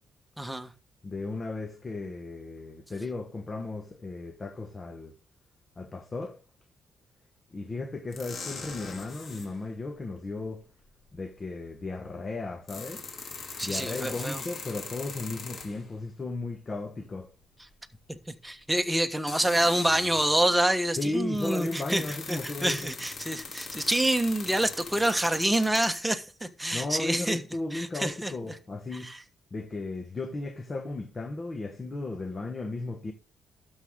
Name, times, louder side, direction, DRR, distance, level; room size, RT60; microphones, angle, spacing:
voice 1, 0.4-0.7 13.6-14.4 18.1-27.4 27.7-28.3 29.0-29.2, right 1 dB, 5° right, 1.2 m, -27 dB
voice 2, 1.0-5.1 5.8-6.4 7.5-10.7 11.1-13.0 13.6-17.3 21.0-22.9 26.7-29.1 29.5-33.1, left 2 dB, 30° left, 1.1 m, -35 dB
sound 1, 8.1-9.5 11.1-11.2 12.4-16.0 18.1-18.2 19.1-20.6 20.9-25.9, left 4 dB, 55° left, 2.5 m, -41 dB
12.0 x 6.5 x 3.6 m
cardioid pair, 90°, 0 cm